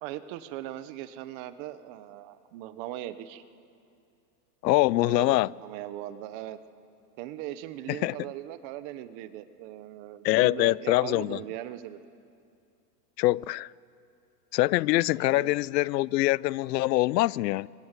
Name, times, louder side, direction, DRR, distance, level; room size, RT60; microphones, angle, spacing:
voice 1, 0.0-3.4 5.0-6.6 7.2-12.0 15.2-15.5, right 13 dB, 30° right, 0.9 m, -39 dB
voice 2, 4.6-5.5 7.9-8.2 10.2-11.4 13.2-13.7 14.5-17.7, left 17 dB, 80° left, 0.6 m, -24 dB
29.0 x 24.5 x 8.2 m
supercardioid pair, 160°, 49 cm